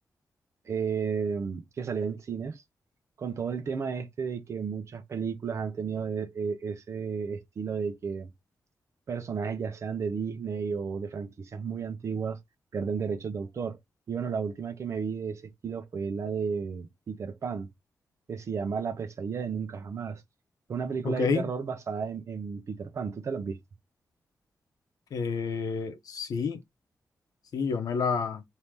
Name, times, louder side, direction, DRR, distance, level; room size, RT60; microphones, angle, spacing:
voice 1, 0.7-2.6 3.2-8.3 9.1-12.4 12.7-13.8 14.1-17.7 18.3-20.2 20.7-23.6, right 6 dB, 50° right, 0.7 m, -33 dB
voice 2, 21.0-21.5 25.1-26.6 27.5-28.4, left 5 dB, 80° left, 0.7 m, -29 dB
3.5 x 2.8 x 4.6 m
wide cardioid pair, 175°, 6 cm